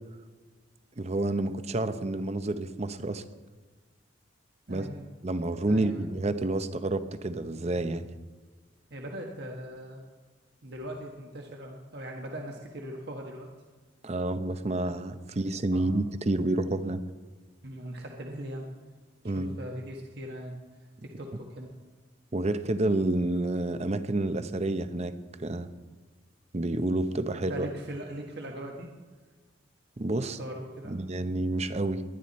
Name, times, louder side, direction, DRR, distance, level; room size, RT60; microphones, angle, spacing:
voice 1, 1.0-3.2 4.7-4.8 5.2-8.1 14.0-17.0 19.2-19.6 22.3-25.1 25.4-25.7 26.5-27.7 30.0-30.4 30.9-32.0, right 2 dB, 35° right, 11 dB, 0.7 m, -29 dB
voice 2, 4.7-5.1 5.7-6.1 8.9-10.0 10.6-13.5 15.7-16.0 17.6-18.7 19.2-21.7 27.3-28.9 30.2-31.0, equal, 60° right, 0 dB, 1.5 m, -40 dB
20.5 x 11.5 x 4.2 m, 1.4 s
head